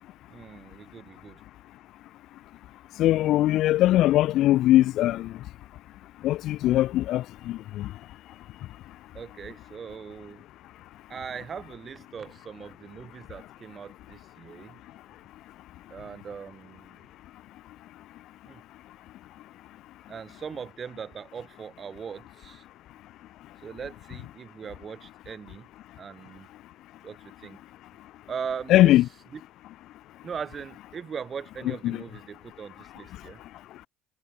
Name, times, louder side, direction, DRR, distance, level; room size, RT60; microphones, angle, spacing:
voice 1, 0.3-1.4 9.1-10.4 11.1-14.8 15.9-17.0 18.4-18.6 20.1-22.6 23.6-25.7 26.0-26.5 27.0-27.6 28.3-29.4 30.2-33.4, right 6 dB, 35° right, 6.4 m, -40 dB
voice 2, 3.0-5.3 6.2-7.9 28.7-29.0 31.8-32.0, left 15 dB, 60° left, 0.4 m, -21 dB
supercardioid pair, 80°, 0 cm